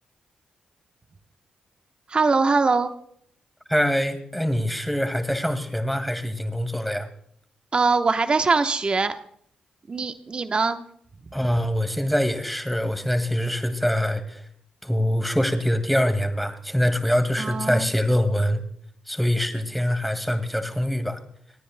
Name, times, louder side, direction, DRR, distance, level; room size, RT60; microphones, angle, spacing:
voice 1, 2.1-2.9 7.7-9.1 9.9-10.8 17.4-17.9, right 4 dB, 40° right, 8 dB, 1.0 m, -22 dB
voice 2, 3.7-7.1 11.3-14.5 14.8-18.6 19.1-21.2, equal, ahead, 8 dB, 2.0 m, -24 dB
27.5 x 10.0 x 2.2 m, 0.65 s
cardioid pair, 60°, 3 cm